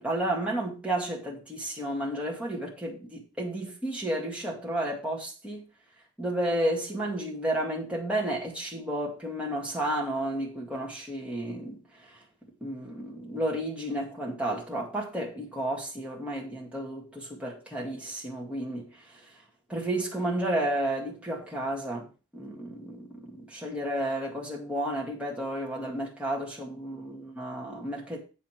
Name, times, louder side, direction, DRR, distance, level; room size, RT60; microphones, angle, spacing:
voice 1, 0.0-5.6 6.2-11.8 12.6-18.9 19.7-22.1 22.3-28.2, right 1 dB, 5° right, 2.0 m, -32 dB
8.3 x 6.8 x 4.5 m
head